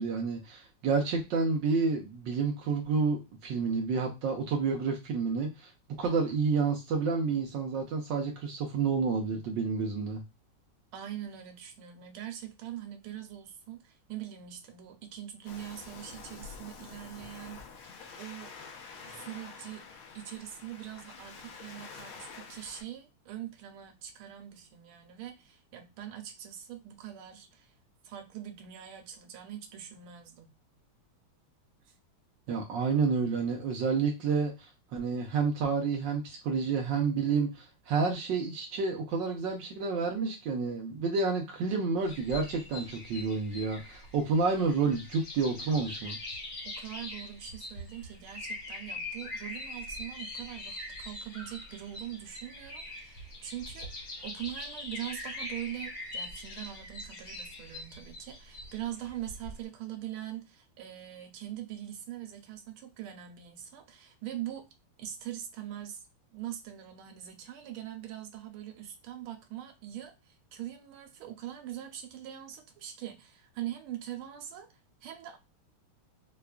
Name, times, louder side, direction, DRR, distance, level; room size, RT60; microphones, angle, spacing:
voice 1, 0.0-5.7 6.0-10.2 32.5-46.2, right 4 dB, 70° right, 1.2 m, -29 dB
voice 2, 10.9-17.6 18.2-18.5 19.1-19.9 20.1-27.7 28.0-30.5 31.8-31.9 46.6-53.9 54.2-64.7 65.0-66.0 66.3-74.7 75.0-75.4, right 12 dB, 85° right, 1.6 m, -42 dB
Waves surf, 15.5-22.8, left 5 dB, 80° left, 1.7 m, -48 dB
sound 1, 42.0-59.6, left 2 dB, 50° left, 1.3 m, -43 dB
4.7 x 2.3 x 2.2 m
omnidirectional pair, 2.3 m